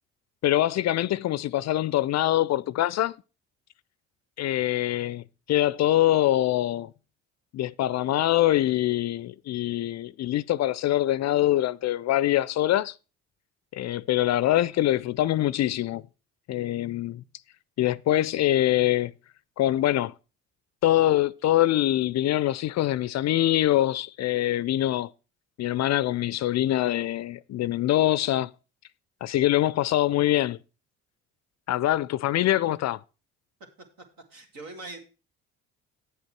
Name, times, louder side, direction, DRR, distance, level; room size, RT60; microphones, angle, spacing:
voice 1, 0.4-3.1 4.4-6.9 7.5-12.9 13.7-16.0 16.5-17.2 17.8-19.1 19.6-20.1 20.8-25.1 25.6-28.5 29.2-30.6 31.7-33.0, left 14 dB, 45° left, 0.4 m, -24 dB
voice 2, 34.3-35.0, right 2 dB, 65° right, 2.5 m, -41 dB
8.4 x 7.9 x 4.5 m
hypercardioid pair, 55°, 37 cm